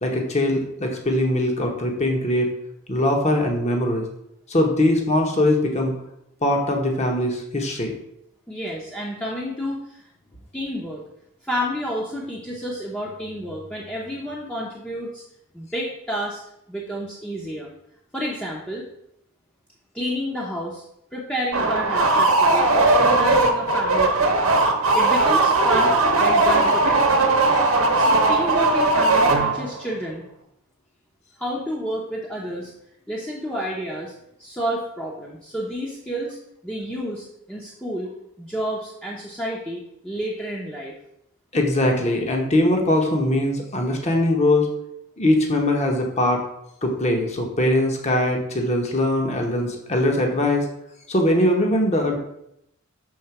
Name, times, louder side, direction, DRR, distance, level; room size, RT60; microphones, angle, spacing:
voice 1, 0.0-2.5 2.9-4.0 4.5-6.0 6.4-7.9 27.5-27.6 41.5-44.7 45.2-46.4 46.8-50.7 51.1-52.2, left 1 dB, 30° left, 2 dB, 1.0 m, -21 dB
voice 2, 8.5-10.1 10.5-11.0 11.4-15.2 15.5-16.4 16.7-17.7 18.1-18.9 19.9-20.8 21.1-24.3 24.9-27.2 28.0-30.2 31.4-32.7 33.1-34.1 34.4-36.4 36.6-38.1 38.4-40.9, equal, 5° left, -4 dB, 0.7 m, -30 dB
sound 1, 21.5-29.8, right 2 dB, 70° right, 0.9 m, -18 dB
6.5 x 3.8 x 5.8 m, 0.79 s
head